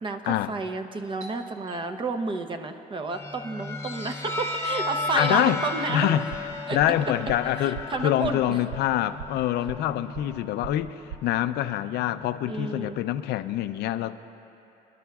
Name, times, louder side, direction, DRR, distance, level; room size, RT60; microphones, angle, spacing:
voice 1, 0.0-6.1 6.7-6.8 7.6-8.6 12.5-13.0, right 3 dB, 30° right, 0.7 m, -31 dB
Doorbell, 1.2-6.6, right 2 dB, 45° right, 1.8 m, -51 dB
sound 1, 3.1-13.0, left 2 dB, 15° left, 0.8 m, -35 dB
voice 2, 5.2-5.6 5.9-6.3 6.7-10.9 11.2-14.1, left 12 dB, 75° left, 0.5 m, -25 dB
sound 2, 6.3-11.3, right 9 dB, 90° right, 0.4 m, -42 dB
27.0 x 11.5 x 2.4 m
cardioid pair, 110°, 17 cm